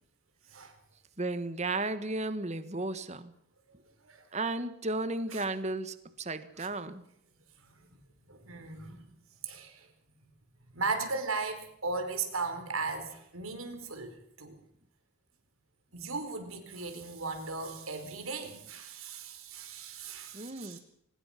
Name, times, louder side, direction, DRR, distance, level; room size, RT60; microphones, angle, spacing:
voice 1, 1.2-3.3 4.3-7.0 20.3-20.8, right 2 dB, 30° right, 12 dB, 1.4 m, -34 dB
voice 2, 8.3-9.0 9.4-9.9 10.7-14.6 15.9-20.8, right 4 dB, 80° right, 7 dB, 4.4 m, -37 dB
24.0 x 20.0 x 5.8 m, 0.72 s
head